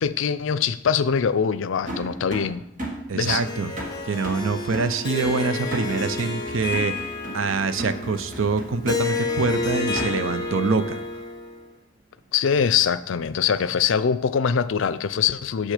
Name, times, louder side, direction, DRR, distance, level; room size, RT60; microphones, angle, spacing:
voice 1, 0.0-2.6 3.1-3.4 12.3-15.7, left 7 dB, 70° left, 15 dB, 0.4 m, -23 dB
sound 1, 1.9-10.5, right 1 dB, 45° right, 1.4 m, -35 dB
voice 2, 3.1-3.7 4.1-7.0 7.3-11.0, right 4 dB, 90° right, 12 dB, 0.6 m, -25 dB
Harp, 3.2-11.7, left 3 dB, 20° left, 1.1 m, -30 dB
6.6 x 6.4 x 4.9 m, 0.75 s
head